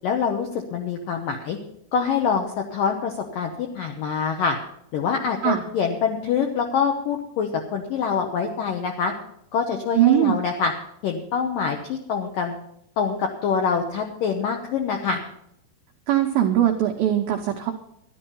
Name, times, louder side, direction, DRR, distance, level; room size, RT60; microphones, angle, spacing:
voice 1, 0.0-1.6 1.9-4.6 4.9-9.1 9.5-10.7 11.0-12.5 13.0-15.2, left 6 dB, 80° left, 3 dB, 2.0 m, -25 dB
voice 2, 10.0-10.4 16.1-17.7, right 11 dB, 80° right, 2 dB, 2.1 m, -20 dB
13.0 x 11.0 x 5.5 m, 0.74 s
omnidirectional pair, 5.6 m